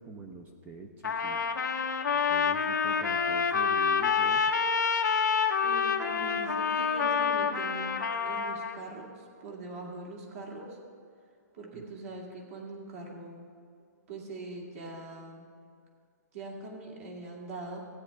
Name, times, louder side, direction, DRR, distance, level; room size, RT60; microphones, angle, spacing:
voice 1, 0.0-1.4 2.3-4.4 11.7-11.8, right 4 dB, 15° right, 4 dB, 0.6 m, -45 dB
Trumpet, 1.0-8.8, left 6 dB, 90° left, 0.8 m, -27 dB
voice 2, 5.6-7.9 8.2-10.8 11.5-13.5 14.1-15.4 16.3-17.8, right 2 dB, 50° right, -1 dB, 2.3 m, -42 dB
15.0 x 8.6 x 3.4 m, 2.3 s
hypercardioid pair, 150°, 10 cm